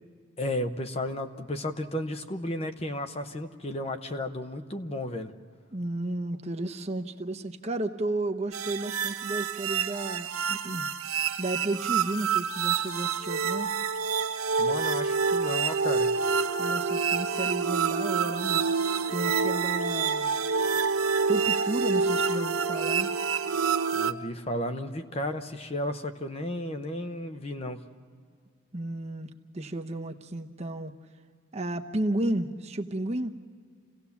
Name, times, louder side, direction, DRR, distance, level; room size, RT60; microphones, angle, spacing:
voice 1, 0.4-5.3 14.6-16.1 23.9-27.8, left 1 dB, 30° left, 7 dB, 0.8 m, -33 dB
voice 2, 5.7-10.9 11.4-13.7 16.6-18.6 19.1-20.4 21.3-23.1 28.7-30.9 31.5-33.4, right 1 dB, 30° right, 5 dB, 0.8 m, -33 dB
sound 1, 8.5-24.1, right 5 dB, 85° right, 0.8 m, -27 dB
28.0 x 17.0 x 7.1 m, 2.1 s
head